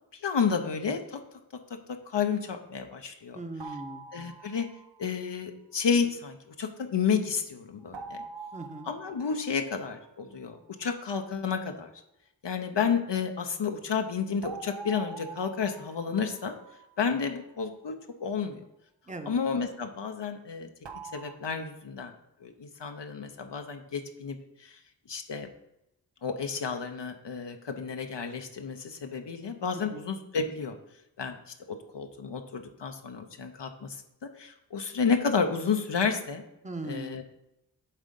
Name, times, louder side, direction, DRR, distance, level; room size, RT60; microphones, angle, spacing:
voice 1, 0.1-1.2 2.1-3.4 4.1-4.7 5.0-8.2 8.9-11.9 12.4-16.5 17.0-18.6 19.3-20.7 21.1-22.1 22.4-24.8 25.1-25.5 26.2-30.8 31.2-31.4 31.7-34.0 34.4-36.4 36.8-37.2, left 6 dB, 80° left, 5 dB, 0.7 m, -31 dB
voice 2, 3.3-4.1 8.5-8.9 19.1-19.3 29.7-30.0 36.6-37.2, right 2 dB, 15° right, 6 dB, 0.8 m, -39 dB
sound 1, 3.6-5.1 7.9-10.4 14.4-17.6 20.9-21.3, right 4 dB, 80° right, 0.7 m, -45 dB
7.6 x 3.7 x 5.2 m, 0.88 s
wide cardioid pair, 40°, 42 cm